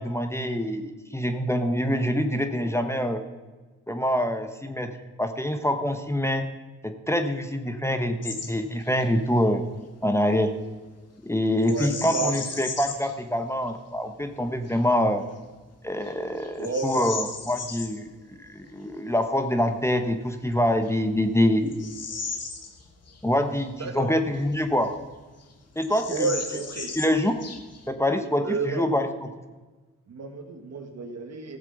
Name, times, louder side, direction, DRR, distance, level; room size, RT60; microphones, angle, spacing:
voice 1, 0.0-3.2 3.9-6.5 6.8-9.6 10.0-10.5 11.2-15.2 15.8-18.1 18.4-21.9 23.2-24.9 25.8-26.3 27.0-27.4 27.9-29.1, left 1 dB, 10° left, 7 dB, 1.1 m, -25 dB
Bird vocalization bird call bird song, 8.2-8.5 8.8-9.1 11.6-13.1 13.7-13.8 14.4-14.8 15.4-15.5 16.0-17.9 20.0-20.1 20.8-23.2 23.6-23.7 24.3-25.1 25.4-25.5 25.8-27.9, left 4 dB, 55° left, 1.8 m, -36 dB
voice 2, 11.6-12.3 16.6-17.1 23.7-24.1 26.1-26.9 28.4-28.9 30.1-31.6, right 4 dB, 60° right, 5 dB, 1.8 m, -31 dB
15.0 x 7.4 x 5.4 m, 1.3 s
cardioid pair, 60°, 30 cm